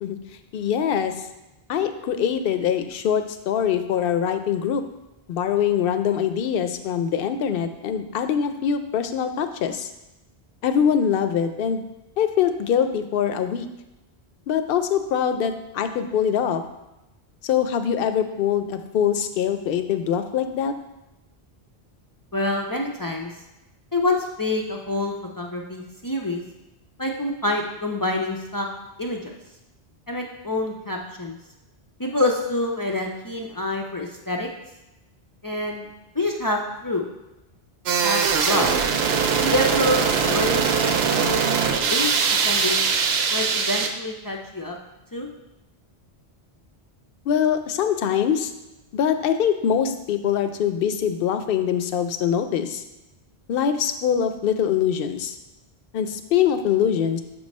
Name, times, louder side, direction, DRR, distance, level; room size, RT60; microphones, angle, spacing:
voice 1, 0.5-1.1 1.7-4.8 5.3-9.9 10.6-11.8 12.2-13.7 14.5-16.6 17.4-20.7 47.3-48.5 48.9-52.8 53.5-55.3 55.9-57.2, left 8 dB, 65° left, 9 dB, 0.7 m, -23 dB
voice 2, 22.3-23.3 23.9-26.4 27.0-28.7 29.0-29.2 30.1-31.3 32.0-34.5 35.4-35.9 36.2-37.1 38.0-38.7 39.4-41.4 41.9-42.1 42.4-42.8 43.3-44.8 45.1-45.3, left 2 dB, 30° left, 0 dB, 0.4 m, -26 dB
sound 1, 37.9-43.9, right 6 dB, 80° right, 0.8 m, -21 dB
7.0 x 3.1 x 5.3 m, 0.95 s
omnidirectional pair, 1.0 m